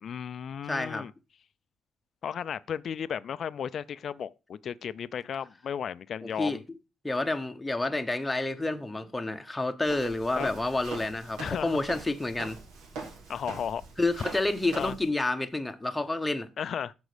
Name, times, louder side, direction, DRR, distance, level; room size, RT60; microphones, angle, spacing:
voice 1, 0.0-1.1 2.2-6.6 10.4-10.5 11.4-11.8 13.3-13.8 14.7-14.9 16.6-16.9, left 8 dB, 45° left, 0.4 m, -34 dB
voice 2, 0.7-1.0 6.2-6.6 7.0-12.6 14.0-16.5, left 2 dB, 5° left, 0.9 m, -29 dB
Walk footsteps, 9.8-15.1, right 4 dB, 80° right, 3.5 m, -43 dB
14.5 x 5.3 x 5.0 m
cardioid pair, 170°, 0 cm